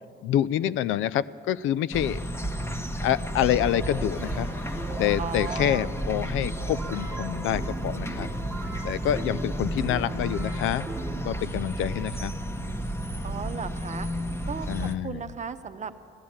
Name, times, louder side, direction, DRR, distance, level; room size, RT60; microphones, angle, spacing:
voice 1, 0.2-2.2 3.0-4.5 5.0-8.3 8.8-10.9 11.2-12.3 14.7-15.2, left 11 dB, 80° left, 17 dB, 0.5 m, -27 dB
sound 1, 1.9-15.0, equal, 15° left, 1.2 m, -32 dB
sound 2, 3.4-11.3, right 2 dB, 10° right, 1.4 m, -39 dB
voice 2, 5.2-5.9 13.2-14.1 14.5-15.9, right 6 dB, 35° right, 10 dB, 0.9 m, -36 dB
15.0 x 11.0 x 8.7 m, 2.3 s
cardioid pair, 90°, 20 cm